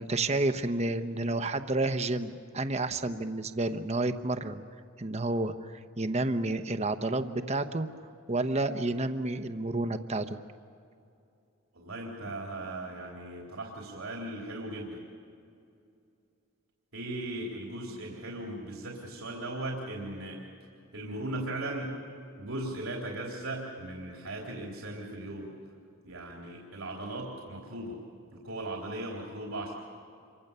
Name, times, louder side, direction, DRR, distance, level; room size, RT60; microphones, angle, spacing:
voice 1, 0.0-4.6 5.0-7.9 8.3-10.4, right 2 dB, 30° right, 9 dB, 0.9 m, -30 dB
voice 2, 11.7-15.0 16.9-20.4 20.9-22.0 22.4-25.5 26.0-28.0 28.3-29.7, right 1 dB, 80° right, -2 dB, 3.7 m, -38 dB
28.0 x 24.5 x 6.9 m, 2.5 s
head